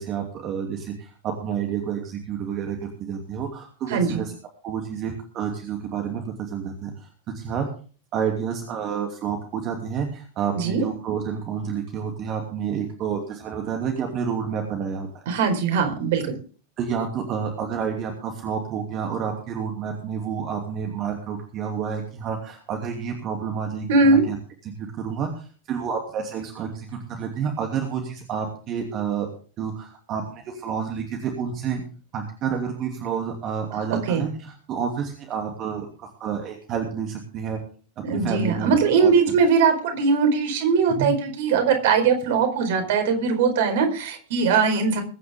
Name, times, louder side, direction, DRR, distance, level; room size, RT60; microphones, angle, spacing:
voice 1, 0.0-4.3 4.6-7.1 7.3-7.7 8.1-15.1 16.8-24.4 24.8-29.3 29.6-31.8 32.1-37.6 38.0-39.1 40.9-41.1, right 7 dB, 35° right, 2 dB, 2.8 m, -29 dB
voice 2, 3.9-4.2 10.5-10.8 15.3-16.3 23.9-24.3 34.1-34.3 38.0-45.0, right 5 dB, 55° right, 5 dB, 4.6 m, -20 dB
22.0 x 9.8 x 3.7 m, 0.40 s
figure-of-eight pair, 90°, 0 cm